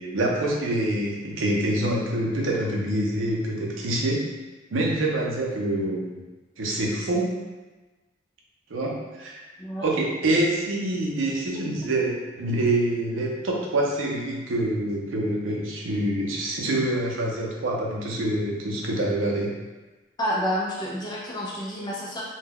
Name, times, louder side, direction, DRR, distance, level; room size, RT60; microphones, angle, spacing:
voice 1, 0.0-4.2 4.7-6.0 6.6-7.3 8.7-9.4 9.8-19.5, right 1 dB, 85° right, -2 dB, 0.5 m, -26 dB
voice 2, 20.2-22.2, equal, 20° left, -5 dB, 0.5 m, -29 dB
2.2 x 2.1 x 3.4 m, 1.2 s
head